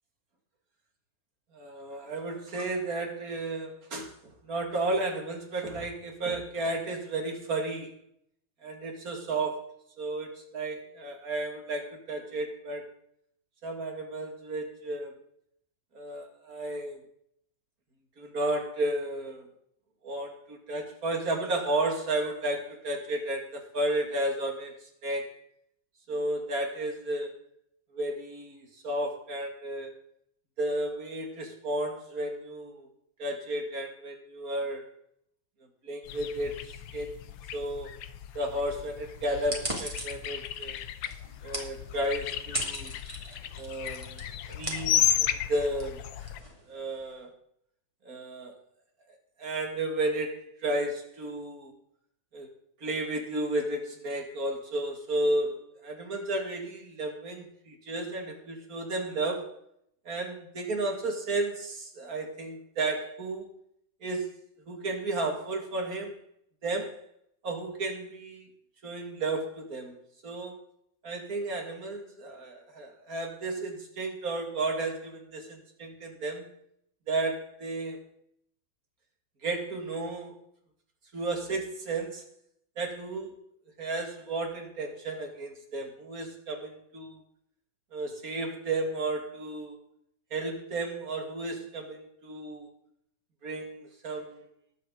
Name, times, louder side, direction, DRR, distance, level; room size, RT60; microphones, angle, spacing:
voice 1, 1.5-7.9 8.6-9.7 10.0-12.8 13.6-15.1 15.9-17.0 18.2-19.5 20.0-25.4 26.1-27.3 27.9-29.9 30.6-32.9 33.2-34.9 35.8-37.2 37.5-37.9 38.3-40.8 41.4-42.9 43.6-44.2 44.5-46.0 46.7-47.3 48.0-48.5 49.4-51.7 52.3-52.5 52.8-59.5 60.1-63.5 64.0-64.3 64.7-66.2 66.6-67.0 67.4-68.5 68.8-70.6 71.0-76.5 77.1-78.0 79.4-80.4 81.1-82.2 82.8-83.4 83.8-87.2 87.9-89.8 90.3-92.7 93.4-94.5, right 2 dB, 45° right, 3 dB, 2.7 m, -33 dB
sound 1, 36.0-46.4, left 11 dB, 75° left, 1.5 m, -34 dB
sound 2, 39.5-47.1, right 1 dB, 15° right, 2.5 m, -40 dB
20.5 x 8.1 x 3.9 m, 0.71 s
omnidirectional pair, 2.2 m